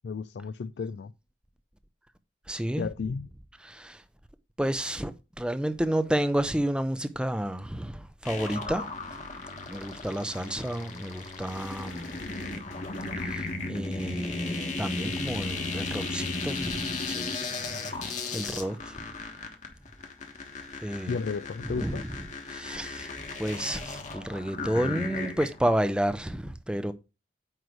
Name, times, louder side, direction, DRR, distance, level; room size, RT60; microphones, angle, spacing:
voice 1, 0.0-1.1 2.8-3.3 21.1-22.0, left 5 dB, 65° left, 0.3 m, -33 dB
voice 2, 2.5-2.9 3.6-4.0 4.6-8.9 9.7-12.2 13.2-17.4 17.9-19.1 19.4-19.5 20.7-21.2 21.6-22.1 22.5-23.1 23.4-26.9, right 1 dB, 5° right, 0.5 m, -31 dB
sound 1, 8.2-25.7, left 3 dB, 40° left, 1.3 m, -36 dB
sound 2, 10.3-18.8, left 3 dB, 90° left, 2.3 m, -51 dB
9.3 x 3.2 x 6.2 m
head